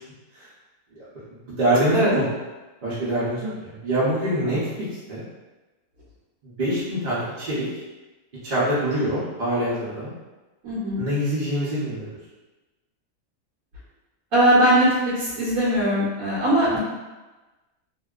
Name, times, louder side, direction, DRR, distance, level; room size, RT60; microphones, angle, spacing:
voice 1, 1.5-2.2 2.8-5.2 6.4-7.7 8.4-10.1 11.0-12.2, right 1 dB, 50° right, -10 dB, 0.6 m, -25 dB
voice 2, 10.6-11.0 14.3-14.9 15.2-16.8, right 1 dB, 75° right, -9 dB, 1.1 m, -20 dB
2.6 x 2.2 x 2.3 m, 1.2 s
omnidirectional pair, 1.6 m